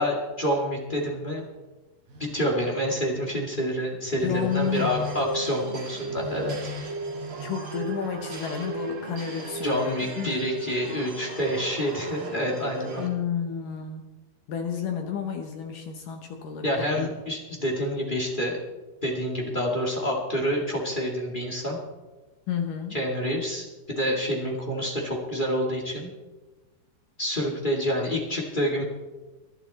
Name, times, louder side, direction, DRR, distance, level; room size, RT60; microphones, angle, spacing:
voice 1, 0.0-1.4 2.2-6.6 9.6-13.0 16.6-18.6 19.0-21.8 22.9-26.1 27.2-28.8, equal, 30° left, -1 dB, 0.8 m, -28 dB
Telephone, 0.9-1.2 2.1-3.2 4.1-5.3 6.1-6.8, left 5 dB, 55° right, 4.1 m, -39 dB
voice 2, 4.2-4.9 7.4-10.4 13.0-14.2 14.5-17.1 22.5-23.0, left 7 dB, 70° left, 4 dB, 2.1 m, -31 dB
sound 1, 4.5-13.1, right 3 dB, 40° right, 2.4 m, -36 dB
21.5 x 12.0 x 4.2 m, 1.2 s
omnidirectional pair, 5.0 m